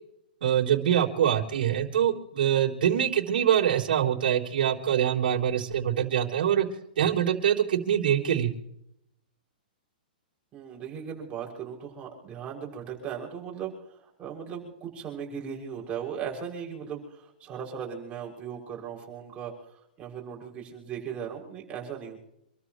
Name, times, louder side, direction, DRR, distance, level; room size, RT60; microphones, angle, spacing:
voice 1, 0.4-6.7 7.0-8.5, right 9 dB, 70° right, -2 dB, 3.6 m, -24 dB
voice 2, 10.5-22.2, right 7 dB, 25° right, -1 dB, 6.4 m, -38 dB
27.5 x 14.0 x 3.1 m, 0.76 s
hypercardioid pair, 140°, 5 cm